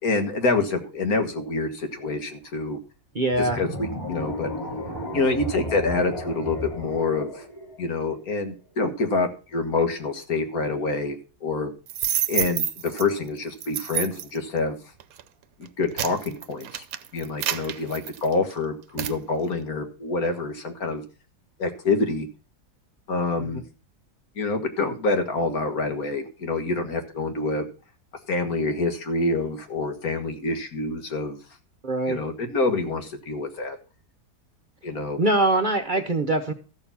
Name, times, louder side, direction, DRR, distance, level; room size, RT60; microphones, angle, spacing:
voice 1, 0.0-2.8 3.4-4.5 5.1-7.4 7.8-11.2 11.4-11.7 12.3-14.8 15.6-16.8 17.1-21.0 21.6-22.3 23.1-23.6 24.4-27.7 28.3-31.4 32.1-33.8 34.8-35.2, left 3 dB, 65° left, 6 dB, 2.0 m, -26 dB
voice 2, 3.1-3.6 23.4-23.6 31.8-32.2 35.2-36.5, right 2 dB, 35° right, 6 dB, 0.9 m, -23 dB
sound 1, 3.3-8.5, left 1 dB, 25° left, 3.3 m, -34 dB
sound 2, 11.9-13.0 13.6-14.4 15.0-15.2 15.7-18.5 19.0-19.2, right 10 dB, 70° right, 1.1 m, -28 dB
13.5 x 6.9 x 5.5 m, 0.35 s
omnidirectional pair, 1.7 m